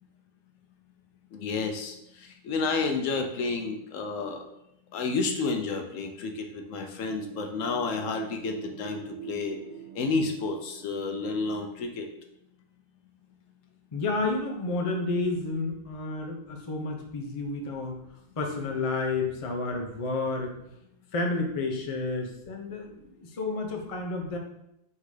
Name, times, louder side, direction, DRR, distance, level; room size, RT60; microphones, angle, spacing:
voice 1, 1.3-4.4 4.9-9.6 9.9-12.1, left 4 dB, 75° left, 4 dB, 0.9 m, -30 dB
sound 1, 7.1-11.6, right 9 dB, 75° right, 1.1 m, -43 dB
voice 2, 13.9-18.0 18.4-20.6 21.1-24.4, left 3 dB, 40° left, 2 dB, 0.5 m, -30 dB
3.7 x 2.7 x 4.7 m, 0.82 s
omnidirectional pair, 1.5 m